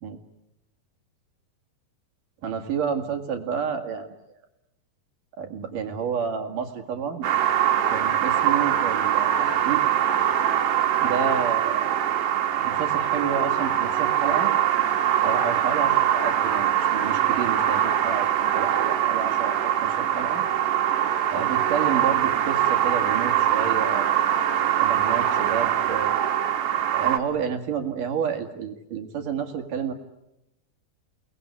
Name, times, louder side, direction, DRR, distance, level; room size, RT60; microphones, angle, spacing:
voice 1, 2.4-4.2 5.4-7.3 7.9-9.8 11.0-11.9 12.6-14.5 15.2-20.4 21.3-24.1 24.8-26.3 26.9-29.9, right 7 dB, 55° right, 5 dB, 3.4 m, -30 dB
sound 1, 7.2-27.2, right 10 dB, 85° right, 4.1 m, -23 dB
29.5 x 20.0 x 9.7 m, 0.90 s
omnidirectional pair, 4.8 m